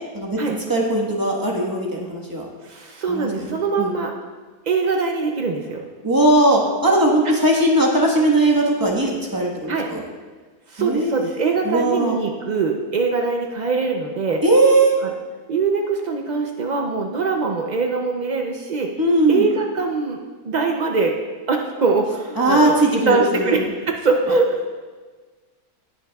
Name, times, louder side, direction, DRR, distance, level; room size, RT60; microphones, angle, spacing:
voice 1, 0.1-2.5 3.1-4.0 6.0-10.0 10.8-12.2 14.4-14.9 19.0-19.4 22.4-23.6, right 1 dB, 15° right, -2 dB, 1.3 m, -19 dB
voice 2, 2.6-4.1 4.7-5.8 7.2-7.3 9.7-9.9 10.7-14.4 15.0-15.1 15.5-18.9 19.3-20.2 20.4-21.2 21.5-22.8 23.1-24.7, right 4 dB, 65° right, 2 dB, 0.4 m, -22 dB
19.0 x 6.8 x 2.3 m, 1.4 s
omnidirectional pair, 1.6 m